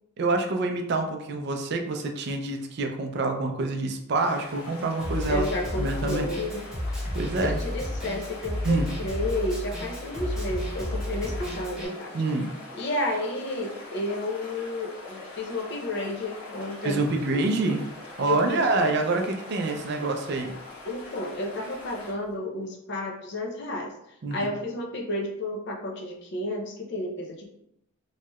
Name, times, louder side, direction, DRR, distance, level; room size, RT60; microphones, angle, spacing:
voice 1, 0.2-5.4 5.8-6.3 7.1-7.6 8.6-8.9 12.1-12.5 16.8-17.8 18.2-20.5 24.2-24.5, right 3 dB, 55° right, 4 dB, 0.4 m, -26 dB
sound 1, 4.2-22.3, left 2 dB, 90° left, 1.4 m, -43 dB
Snare drum, 5.0-11.9, left 1 dB, 5° right, 0.8 m, -32 dB
voice 2, 5.3-6.7 7.5-12.1 12.7-17.0 18.2-19.3 20.8-23.9 24.3-27.6, left 1 dB, 55° left, 1 dB, 0.6 m, -31 dB
3.0 x 2.8 x 2.3 m, 0.77 s
head